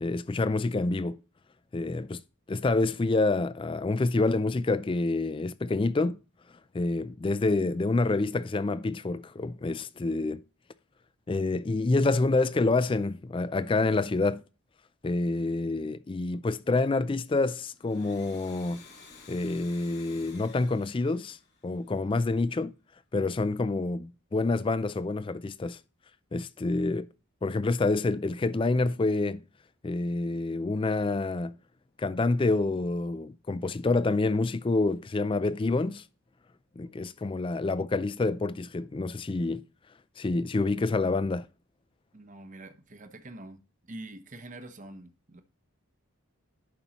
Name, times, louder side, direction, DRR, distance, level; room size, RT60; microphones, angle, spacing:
voice 1, 0.0-1.2 1.7-2.2 2.5-6.2 6.7-10.4 11.3-14.4 15.0-18.8 19.3-21.4 21.6-22.7 23.1-25.8 26.3-27.1 27.4-29.4 29.8-31.5 32.0-36.0 36.8-39.6 40.2-41.5, left 3 dB, 25° left, 0.3 m, -27 dB
Domestic sounds home sounds, 17.7-22.2, left 4 dB, 45° left, 2.4 m, -52 dB
voice 2, 42.1-43.6 43.9-45.4, right 2 dB, 35° right, 0.8 m, -45 dB
11.0 x 5.3 x 2.9 m
head